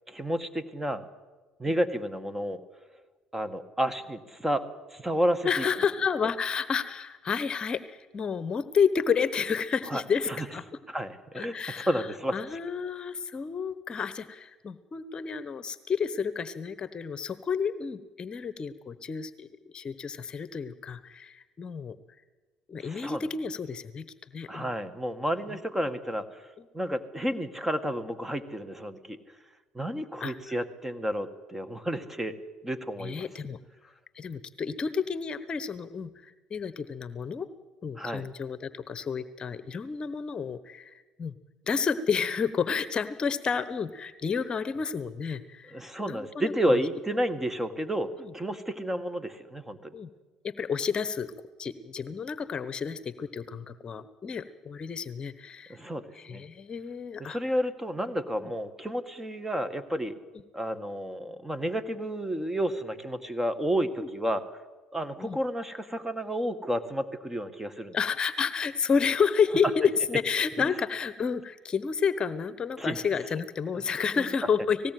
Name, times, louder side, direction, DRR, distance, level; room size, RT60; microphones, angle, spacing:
voice 1, 0.1-1.0 1.6-2.6 3.3-5.7 9.9-10.5 10.9-12.6 22.8-23.2 24.5-26.5 26.7-29.2 29.7-32.4 32.6-33.3 38.0-38.2 45.7-49.9 55.7-56.4 57.2-60.2 60.5-64.4 64.9-68.0 70.6-70.8 72.8-73.0 74.2-74.3, equal, 10° right, 12 dB, 1.9 m, -31 dB
voice 2, 5.4-10.6 11.3-12.1 12.3-19.5 19.7-22.0 22.7-24.1 24.3-24.7 30.2-30.3 33.0-33.6 34.2-37.5 37.8-41.3 41.7-46.8 49.9-50.1 50.4-51.3 51.6-55.8 56.1-57.4 65.2-65.4 67.9-74.8, left 6 dB, 40° left, 14 dB, 1.1 m, -30 dB
19.0 x 16.5 x 9.3 m, 1.2 s
supercardioid pair, 75°, 2 cm